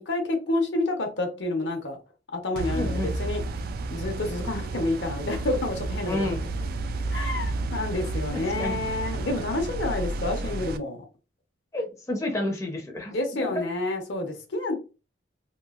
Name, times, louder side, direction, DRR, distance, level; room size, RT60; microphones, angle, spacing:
voice 1, 0.0-2.0 2.3-3.4 3.9-6.3 7.1-11.0 13.1-14.8, left 2 dB, 70° left, 0.8 m, -29 dB
sound 1, 2.6-10.8, right 2 dB, 55° right, 0.3 m, -31 dB
voice 2, 2.7-3.1 6.1-6.5 8.3-8.8 11.7-13.1 13.4-13.5, left 2 dB, 15° left, 0.6 m, -30 dB
3.0 x 2.7 x 2.4 m
head